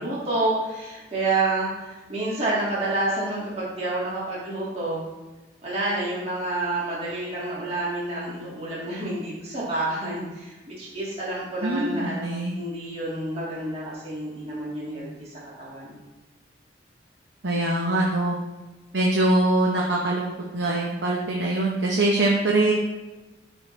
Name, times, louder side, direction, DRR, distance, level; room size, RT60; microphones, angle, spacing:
voice 1, 0.0-5.0 5.6-15.3 15.6-15.9, right 2 dB, 35° right, -7 dB, 2.0 m, -29 dB
voice 2, 11.6-12.6 17.4-18.4 18.9-22.7, right 2 dB, 75° right, -2 dB, 0.9 m, -23 dB
12.0 x 4.5 x 3.3 m, 1.1 s
head